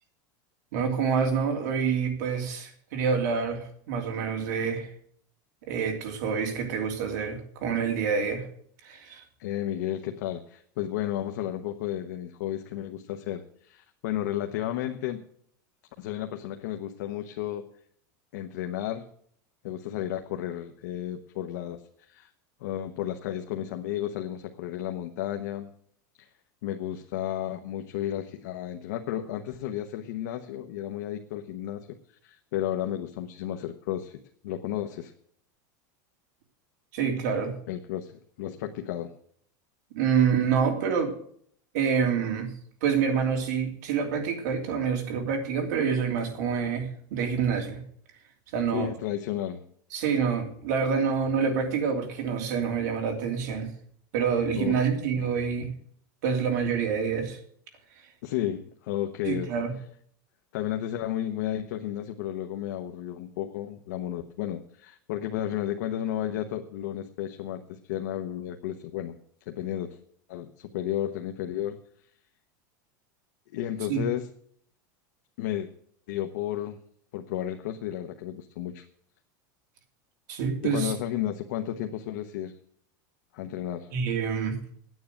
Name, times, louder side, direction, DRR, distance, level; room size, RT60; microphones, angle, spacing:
voice 1, 0.7-4.9 5.7-8.4 8.8-9.2 36.9-37.5 39.9-41.1 41.7-42.5 42.8-47.8 48.5-48.9 49.9-53.7 54.1-55.7 56.2-57.4 59.2-59.7 73.9-74.0 80.3-80.9 83.9-84.6, right 6 dB, 65° right, 3 dB, 2.9 m, -27 dB
voice 2, 9.4-15.2 16.0-17.7 18.3-19.1 19.6-21.8 22.1-22.3 22.6-25.7 26.2-26.3 26.6-32.0 32.2-35.1 37.7-39.1 48.7-49.6 54.6-55.0 58.2-59.6 60.5-69.2 69.5-70.0 70.3-71.8 73.5-74.3 75.4-75.7 76.1-76.8 77.1-78.8 80.6-82.5 83.3-83.9, left 11 dB, 65° left, 5 dB, 1.0 m, -33 dB
9.5 x 8.5 x 9.0 m, 0.63 s
supercardioid pair, 175°, 10 cm